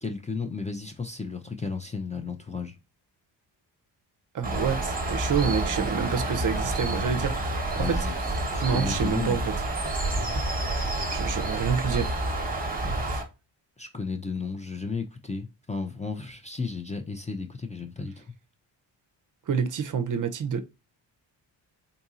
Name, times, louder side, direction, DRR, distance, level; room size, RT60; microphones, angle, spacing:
voice 1, 0.0-2.7 7.8-9.4 13.8-18.3, left 4 dB, 15° left, 0.4 m, -34 dB
voice 2, 4.3-7.9 8.6-9.5 11.1-12.2 13.0-13.2 19.5-20.6, right 6 dB, 45° right, 0.6 m, -28 dB
Bird, 4.4-13.2, right 2 dB, 20° right, 1.0 m, -29 dB
4.0 x 2.6 x 2.4 m
cardioid pair, 75°, 46 cm